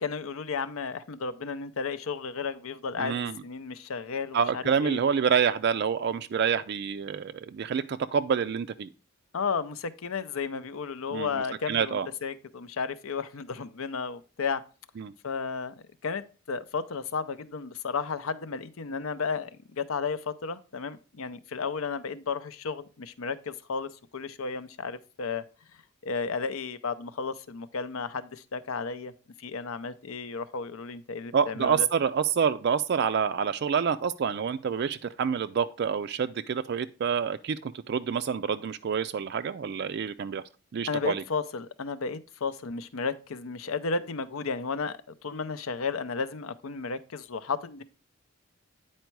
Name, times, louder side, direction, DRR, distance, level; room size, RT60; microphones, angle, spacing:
voice 1, 0.0-5.0 9.3-14.6 15.2-15.7 16.0-25.4 26.0-29.1 29.4-31.9 40.9-47.8, left 5 dB, 75° left, 0.6 m, -33 dB
voice 2, 3.0-3.4 4.3-8.9 11.1-12.1 15.0-15.1 31.3-40.4 40.7-41.2, right 7 dB, 50° right, 0.3 m, -27 dB
9.4 x 4.4 x 4.6 m
head